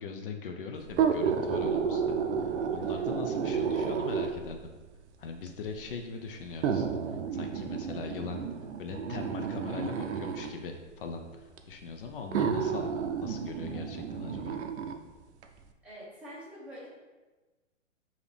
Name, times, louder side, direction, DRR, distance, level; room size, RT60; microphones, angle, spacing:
voice 1, 0.0-2.2 2.5-4.7 5.2-6.9 7.3-8.4 8.8-12.9 13.2-14.6, left 5 dB, 45° left, 4 dB, 0.5 m, -40 dB
sound 1, 0.9-4.5 5.5-5.6 6.6-10.5 11.6-11.7 12.3-15.0 15.4-15.5, right 6 dB, 65° right, 0.5 m, -31 dB
voice 2, 2.7-3.1 15.8-16.9, equal, 5° right, -9 dB, 1.0 m, -47 dB
4.9 x 2.8 x 3.3 m, 1.2 s
hypercardioid pair, 140°, 38 cm